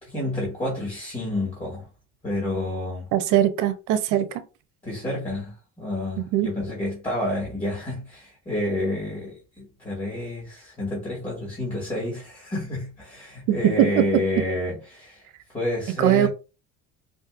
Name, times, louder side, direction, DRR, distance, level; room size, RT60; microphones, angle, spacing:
voice 1, 0.0-1.9 2.2-3.1 4.8-15.2 15.5-16.3, left 1 dB, 15° left, 1.9 m, -29 dB
voice 2, 3.1-4.3 6.2-6.5 13.5-14.0 16.0-16.3, right 11 dB, 90° right, 0.8 m, -21 dB
5.0 x 2.7 x 2.5 m
cardioid pair, 150°, 29 cm